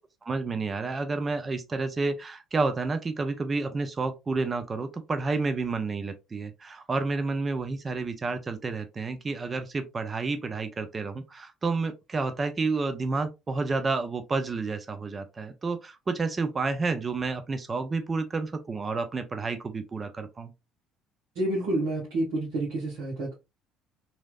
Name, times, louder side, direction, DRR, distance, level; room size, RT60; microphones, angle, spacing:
voice 1, 0.2-20.5, right 3 dB, 30° right, 0.5 m, -30 dB
voice 2, 21.3-23.3, right 1 dB, 65° right, 1.3 m, -29 dB
3.0 x 2.7 x 2.3 m
hypercardioid pair, 55°, 0 cm